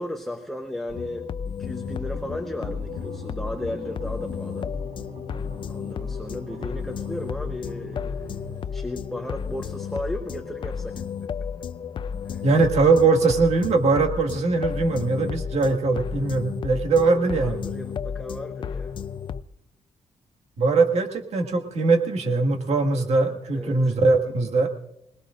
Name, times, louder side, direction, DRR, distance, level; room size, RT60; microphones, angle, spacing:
voice 1, 0.0-4.7 5.7-11.0 12.2-12.4 17.4-18.9 23.5-23.9, left 1 dB, 5° left, 4 dB, 0.8 m, -35 dB
sound 1, 0.9-19.4, left 7 dB, 45° left, 0.5 m, -33 dB
sound 2, 1.8-9.1, right 4 dB, 90° right, 1.8 m, -43 dB
voice 2, 12.4-17.6 20.6-24.7, right 3 dB, 70° right, 3 dB, 1.8 m, -21 dB
25.5 x 19.5 x 2.5 m, 0.81 s
wide cardioid pair, 155°, 12 cm